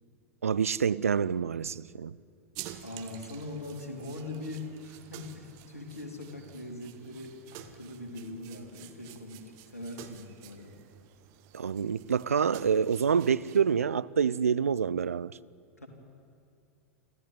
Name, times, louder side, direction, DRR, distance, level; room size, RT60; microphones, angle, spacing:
voice 1, 0.4-2.2 11.5-15.3, right 7 dB, 70° right, 0.5 m, -27 dB
sound 1, 2.5-13.6, right 11 dB, 40° right, 1.5 m, -50 dB
voice 2, 2.8-10.7 15.8-15.9, left 2 dB, 80° left, 4.0 m, -41 dB
26.5 x 14.5 x 9.5 m
figure-of-eight pair, 95°, 8 cm